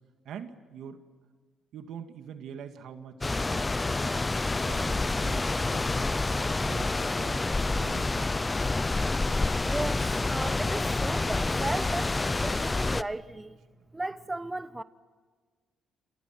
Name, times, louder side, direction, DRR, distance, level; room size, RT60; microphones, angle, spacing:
voice 1, 0.3-1.0 1.7-4.2 4.6-6.1 6.4-8.3 13.7-13.8, right 7 dB, 75° right, 2.1 m, -44 dB
sound 1, 3.2-13.0, left 3 dB, 20° left, 0.7 m, -28 dB
voice 2, 9.6-13.6 13.9-14.8, right 2 dB, 15° right, 1.0 m, -36 dB
29.0 x 27.5 x 6.0 m
cardioid pair, 90°, 0 cm